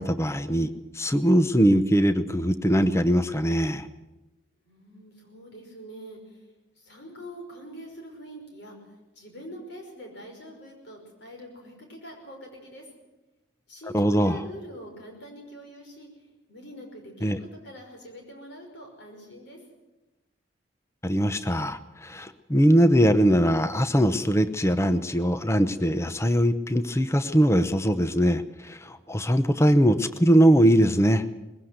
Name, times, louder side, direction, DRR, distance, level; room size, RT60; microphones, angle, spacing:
voice 1, 0.0-3.9 13.9-14.4 17.2-17.4 21.0-31.2, equal, 15° left, 12 dB, 0.7 m, -21 dB
voice 2, 4.6-6.5 6.8-8.8 9.2-12.9 13.7-19.6, equal, 55° left, 2 dB, 5.6 m, -44 dB
20.5 x 16.0 x 7.9 m, 1.1 s
head